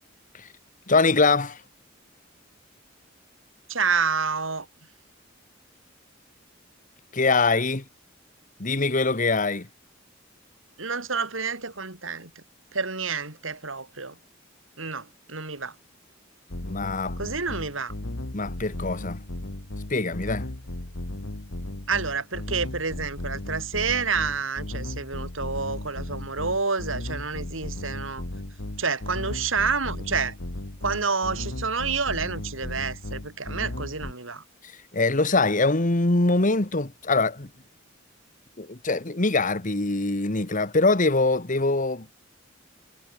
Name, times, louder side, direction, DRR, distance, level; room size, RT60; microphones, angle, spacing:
voice 1, 0.9-1.6 7.1-7.8 8.6-9.7 16.6-17.2 18.3-19.2 19.9-20.5 34.9-37.5 38.6-42.1, left 3 dB, 40° left, 1.6 m, -23 dB
voice 2, 3.7-4.7 10.8-12.4 12.7-14.2 14.8-15.7 17.2-17.9 21.9-28.2 28.8-30.4 30.8-34.4, right 5 dB, 90° right, 4.8 m, -29 dB
sound 1, 16.5-34.1, left 1 dB, 80° left, 1.8 m, -35 dB
head